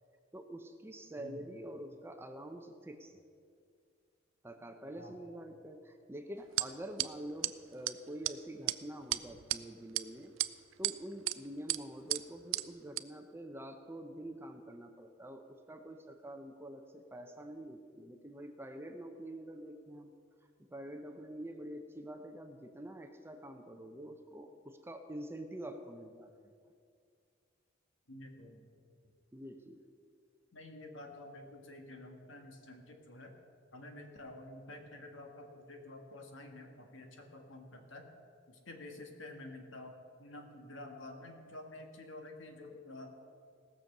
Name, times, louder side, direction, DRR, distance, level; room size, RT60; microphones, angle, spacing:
voice 1, 0.3-3.2 4.4-10.3 10.8-20.1 20.7-26.4 29.3-29.8, right 1 dB, 10° right, 6 dB, 0.7 m, -46 dB
voice 2, 1.2-1.5 5.0-5.2 28.1-28.6 30.5-33.3 33.7-38.1 38.5-43.1, left 2 dB, 65° left, 4 dB, 1.6 m, -50 dB
sound 1, 6.6-6.7 7.0-7.1 7.4-7.5 7.9-8.0 8.2-8.3 8.7-8.8 9.1-9.6 9.9-10.0 10.4-10.9 11.3-11.4 11.7-11.8 12.1-12.2 12.5-12.6 13.0-13.1, right 16 dB, 75° right, 0.4 m, -32 dB
18.0 x 7.0 x 6.6 m, 2.3 s
head